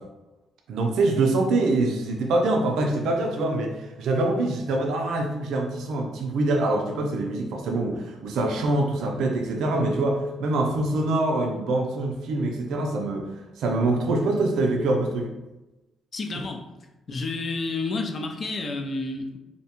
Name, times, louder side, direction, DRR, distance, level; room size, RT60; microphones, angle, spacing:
voice 1, 0.7-13.2 13.6-15.3 16.3-16.4, right 2 dB, 80° right, 2 dB, 0.4 m, -24 dB
voice 2, 16.1-16.6 17.1-19.4, left 3 dB, 45° left, 4 dB, 0.4 m, -30 dB
2.6 x 2.1 x 2.8 m, 1.0 s
cardioid pair, 90°, 0 cm